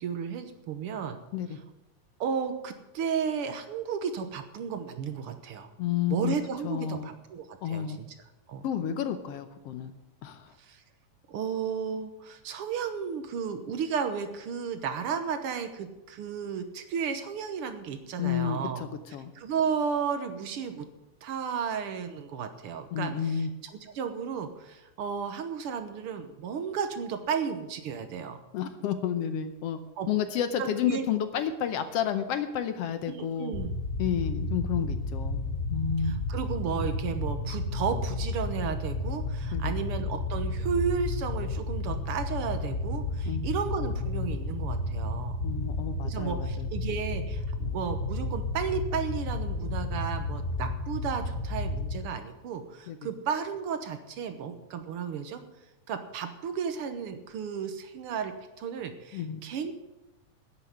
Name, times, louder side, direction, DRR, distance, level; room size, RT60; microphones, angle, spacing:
voice 1, 0.0-1.2 2.2-5.7 6.1-8.1 8.5-8.6 10.6-10.8 11.3-18.8 19.3-20.8 21.2-28.4 30.0-30.1 30.6-31.0 33.0-33.8 36.0-45.4 46.0-55.4 55.9-59.7, right 6 dB, 65° right, 9 dB, 1.5 m, -33 dB
voice 2, 5.8-6.3 6.6-7.1 7.6-8.0 8.6-9.9 10.2-10.5 18.2-19.3 22.9-23.5 28.5-29.8 30.1-33.5 34.0-35.4 35.7-36.1 39.5-39.7 43.2-43.5 45.4-46.7 52.9-53.1 59.1-59.4, left 9 dB, 70° left, 10 dB, 1.5 m, -31 dB
sound 1, 33.5-52.0, left 2 dB, 40° left, 1.2 m, -32 dB
10.0 x 8.2 x 9.3 m, 0.97 s
omnidirectional pair, 3.4 m